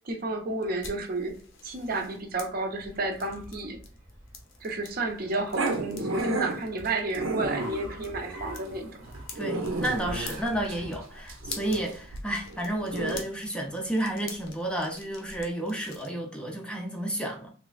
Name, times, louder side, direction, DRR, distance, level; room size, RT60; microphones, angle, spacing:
voice 1, 0.0-1.4 1.6-3.8 4.6-9.1, right 2 dB, 45° right, 0.5 m, -31 dB
sound 1, 0.6-16.1, left 4 dB, 75° left, 0.8 m, -47 dB
Car, 1.9-14.7, equal, 10° right, 0.9 m, -50 dB
Growling, 5.5-13.2, right 2 dB, 90° right, 0.6 m, -33 dB
voice 2, 9.3-17.5, right 1 dB, 5° left, 0.4 m, -31 dB
3.2 x 3.1 x 2.3 m
head